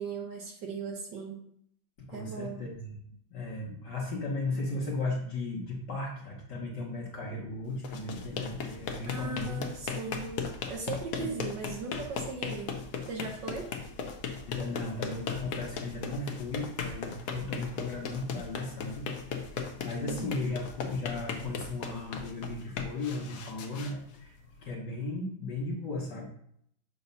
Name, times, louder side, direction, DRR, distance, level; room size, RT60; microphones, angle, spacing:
voice 1, 0.0-1.4 2.1-2.6 9.1-12.8 13.1-13.7 20.0-20.4, right 4 dB, 65° right, 1 dB, 1.4 m, -38 dB
voice 2, 2.1-2.9 3.3-9.7 11.2-11.3 14.4-19.4 19.8-24.4 24.6-26.3, left 2 dB, 60° left, -3 dB, 1.5 m, -36 dB
sound 1, 7.7-24.7, left 6 dB, 90° left, 0.7 m, -38 dB
7.0 x 2.8 x 5.4 m, 0.69 s
omnidirectional pair, 2.4 m